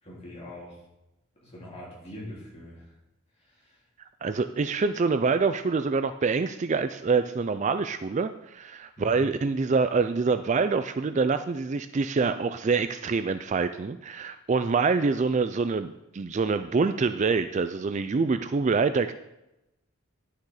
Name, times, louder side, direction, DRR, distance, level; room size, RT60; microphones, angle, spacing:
voice 1, 0.0-0.8 1.4-2.9 3.4-3.8 9.0-9.2, left 1 dB, 30° left, -6 dB, 3.7 m, -43 dB
voice 2, 4.2-19.1, right 4 dB, 35° right, 11 dB, 0.3 m, -26 dB
11.0 x 6.5 x 4.9 m, 0.91 s
head